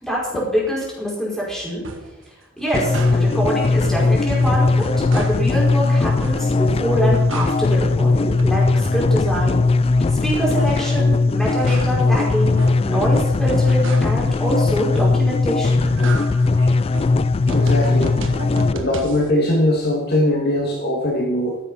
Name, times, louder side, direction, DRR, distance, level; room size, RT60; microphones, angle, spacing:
voice 1, 0.0-1.8 2.6-9.6 10.0-15.9, equal, ahead, -5 dB, 5.1 m, -25 dB
sound 1, 1.8-2.2 2.6-3.6 3.8-5.6 6.0-6.7 7.0-7.9 8.2-10.9 11.3-14.3 14.8-15.4 15.7-19.3, right 2 dB, 70° right, 1.6 m, -34 dB
sound 2, 2.7-18.7, left 3 dB, 30° left, 0.3 m, -18 dB
voice 2, 17.5-18.2 18.7-21.6, left 1 dB, 55° left, 0 dB, 2.1 m, -20 dB
15.5 x 7.9 x 5.7 m, 1.0 s
head